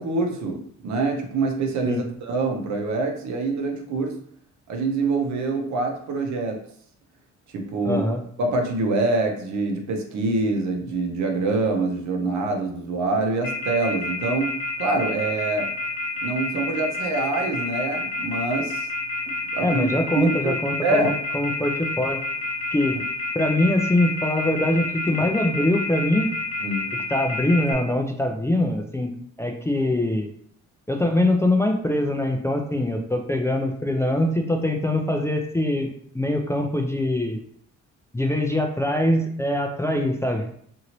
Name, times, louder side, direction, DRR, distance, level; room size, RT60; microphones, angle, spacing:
voice 1, 0.0-4.1 4.7-6.6 7.5-8.0 8.4-15.7 16.2-18.9 19.5-19.9 20.2-20.6 20.8-21.1 26.6-26.9, right 3 dB, 70° right, 3 dB, 0.7 m, -25 dB
voice 2, 7.8-8.2 19.6-22.2 22.7-23.0 23.3-26.3 27.1-29.1 29.4-30.3 30.9-35.9 36.1-37.4 38.1-40.5, left 1 dB, 10° left, 2 dB, 0.3 m, -23 dB
Telephone, 13.4-27.7, left 2 dB, 75° left, 1.1 m, -29 dB
2.8 x 2.6 x 2.9 m, 0.62 s
cardioid pair, 90°, 30 cm